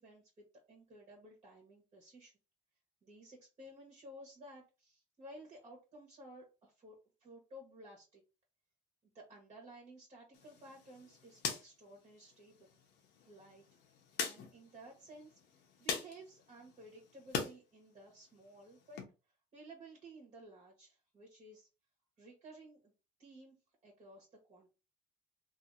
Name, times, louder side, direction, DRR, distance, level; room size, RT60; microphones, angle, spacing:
voice 1, 0.0-2.3 3.0-8.2 9.1-12.7 13.2-13.6 14.2-19.0 19.5-21.7 22.2-22.9 23.2-23.5 23.8-24.7, right 1 dB, 35° right, -1 dB, 1.5 m, -55 dB
sound 1, 10.3-17.5 17.9-19.0, left 6 dB, 80° left, 1.0 m, -44 dB
2.9 x 2.8 x 2.7 m, 0.30 s
cardioid pair, 110°, 17 cm